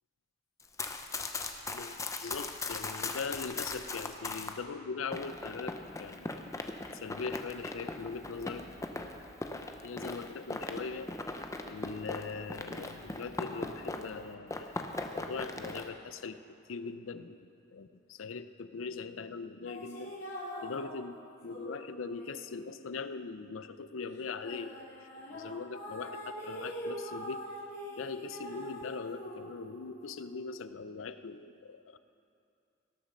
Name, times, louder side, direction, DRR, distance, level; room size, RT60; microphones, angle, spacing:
Run, 0.6-4.6 5.1-14.2 14.5-15.9, left 2 dB, 15° left, 0.6 m, -39 dB
voice 1, 1.7-6.4 7.0-8.6 9.8-11.1 11.6-14.8 15.1-16.4 16.7-20.1 20.6-21.2 21.4-27.4 28.0-32.0, left 4 dB, 85° left, 12 dB, 0.5 m, -41 dB
sound 1, 19.7-23.7 24.1-30.6, equal, 55° left, 2.7 m, -44 dB
18.0 x 7.3 x 6.5 m, 2.5 s
head